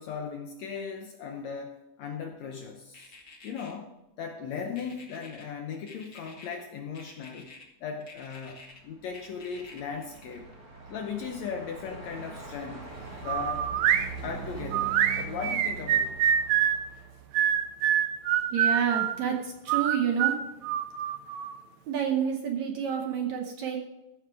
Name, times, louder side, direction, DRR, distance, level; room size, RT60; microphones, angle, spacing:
voice 1, 0.0-3.1 3.4-3.9 4.2-7.5 7.8-10.5 10.9-12.9 13.2-13.7 14.2-16.2, left 6 dB, 75° left, 3 dB, 1.6 m, -37 dB
sound 1, 2.9-3.7 4.8-5.4 5.9-6.6 6.9-7.6 8.0-8.8 9.1-10.5, left 3 dB, 45° left, 0.9 m, -49 dB
Truck, 8.4-17.8, right 4 dB, 30° right, 1.3 m, -43 dB
sound 2, 13.3-14.1 14.7-16.8 17.3-19.2 19.7-21.5, right 10 dB, 85° right, 1.5 m, -25 dB
voice 2, 18.5-20.4 21.9-23.8, right 7 dB, 70° right, 3 dB, 1.9 m, -29 dB
14.5 x 6.4 x 4.7 m, 0.95 s
omnidirectional pair, 4.1 m